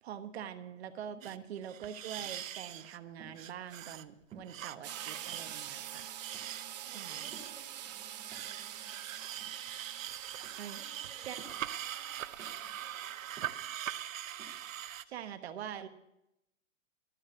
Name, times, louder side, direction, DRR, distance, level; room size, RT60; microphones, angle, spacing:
voice 1, 0.0-6.1 6.9-7.3 10.6-10.8 11.2-11.4 15.1-15.9, right 9 dB, 55° right, 10 dB, 1.2 m, -44 dB
sound 1, 0.8-0.9 1.1-1.7 2.2-2.6 2.9-4.7 5.0-5.7 6.1-6.7 7.3-8.6 9.2-10.0 10.3-10.6 11.3-11.8 12.4-13.7 14.4-14.7, right 5 dB, 15° right, 1.6 m, -56 dB
sound 2, 1.2-1.4 1.6-3.0 3.4-4.0 4.4-7.5 8.3-15.0, right 11 dB, 85° right, 0.8 m, -42 dB
sound 3, 4.8-13.6, right 11 dB, 35° right, 0.8 m, -46 dB
voice 2, 6.8-9.1 10.7-13.1, equal, 5° left, -1 dB, 0.4 m, -59 dB
13.0 x 6.5 x 9.5 m, 0.85 s
hypercardioid pair, 160°, 38 cm